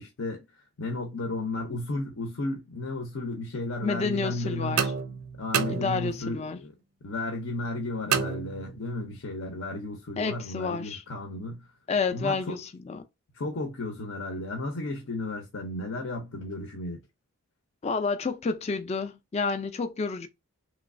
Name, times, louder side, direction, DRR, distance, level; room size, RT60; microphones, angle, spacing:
voice 1, 0.0-4.8 5.4-6.7 7.0-11.7 12.1-12.6 13.3-17.0, left 2 dB, 70° left, 0.6 m, -34 dB
voice 2, 3.8-4.9 5.7-6.6 10.2-11.0 11.9-13.0 17.8-20.3, left 4 dB, 30° left, 0.3 m, -30 dB
sound 1, 4.8-6.4 8.1-9.1, right 7 dB, 85° right, 0.5 m, -30 dB
3.1 x 3.0 x 2.5 m
head